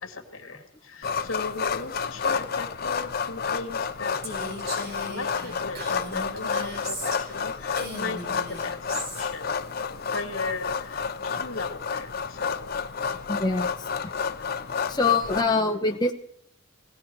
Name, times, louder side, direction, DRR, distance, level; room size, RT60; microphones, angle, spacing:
voice 1, 0.0-12.8 14.4-14.7, left 3 dB, 75° left, 5 dB, 2.2 m, -38 dB
sound 1, 1.0-15.4, left 6 dB, 45° left, 0.6 m, -30 dB
Female speech woman speaking, 4.2-7.4 7.7-9.3, equal, 50° right, 4.7 m, -37 dB
voice 2, 13.3-14.1 14.7-16.1, left 3 dB, 20° left, 1 dB, 1.0 m, -25 dB
18.5 x 16.0 x 4.7 m, 0.65 s
head